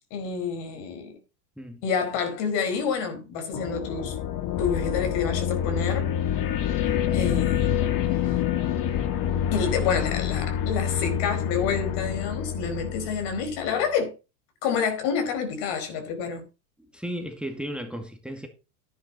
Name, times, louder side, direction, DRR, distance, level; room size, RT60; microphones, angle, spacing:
voice 1, 0.1-1.2 1.8-4.2 4.6-6.1 7.1-7.7 8.2-8.4 9.5-14.1 14.6-16.4, left 6 dB, 55° left, 4.9 m, -28 dB
sound 1, 3.5-13.7, left 9 dB, 40° left, 2.1 m, -27 dB
voice 2, 16.8-18.5, equal, ahead, 2.0 m, -35 dB
11.5 x 10.5 x 4.2 m
supercardioid pair, 115°, 49 cm